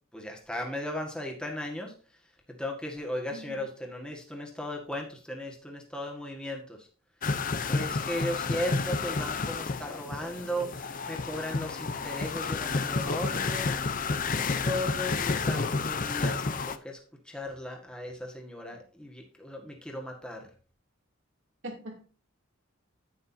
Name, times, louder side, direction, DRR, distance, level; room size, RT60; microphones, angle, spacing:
voice 1, 0.1-1.9 2.6-6.9 7.7-13.7 14.6-17.0 17.2-20.5, left 1 dB, 5° left, 0 dB, 1.7 m, -36 dB
voice 2, 3.3-3.7 18.7-18.8 21.6-22.0, right 1 dB, 65° right, 0 dB, 2.8 m, -42 dB
sound 1, 7.2-16.8, left 4 dB, 40° left, 0.7 m, -30 dB
9.8 x 9.4 x 2.8 m, 0.37 s
head